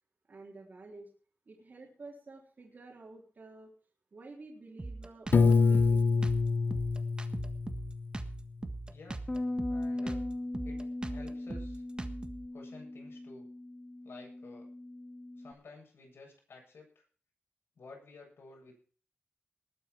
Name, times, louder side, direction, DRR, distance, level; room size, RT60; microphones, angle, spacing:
voice 1, 0.3-1.1 1.5-3.7 4.1-6.3, right 3 dB, 50° right, -2 dB, 3.5 m, -50 dB
Drum kit, 4.8-12.5, right 2 dB, 25° right, 1.5 m, -40 dB
Piano, 5.3-8.3, left 4 dB, 60° left, 0.8 m, -26 dB
voice 2, 8.9-9.2 9.7-10.2 10.6-10.8 11.1-11.8 12.5-13.5 14.0-14.7 15.3-17.0 17.8-18.8, left 3 dB, 75° left, -1 dB, 7.8 m, -52 dB
Bass guitar, 9.3-15.5, left 1 dB, 20° left, 2.4 m, -39 dB
20.0 x 8.9 x 4.6 m, 0.42 s
wide cardioid pair, 110°, 4 cm